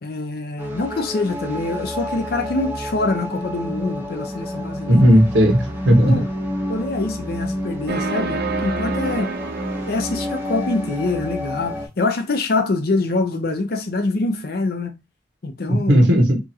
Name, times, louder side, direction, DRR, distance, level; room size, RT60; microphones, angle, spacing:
voice 1, 0.0-5.2 6.0-6.2 6.7-9.3 9.9-15.0 15.4-16.1, left 3 dB, 55° left, 0.5 m, -25 dB
sound 1, 0.6-11.9, equal, 10° right, 0.6 m, -29 dB
voice 2, 4.9-6.2 15.7-16.4, equal, 75° right, 0.9 m, -15 dB
sound 2, 7.9-10.9, right 5 dB, 55° right, 0.4 m, -29 dB
2.8 x 2.4 x 2.7 m
head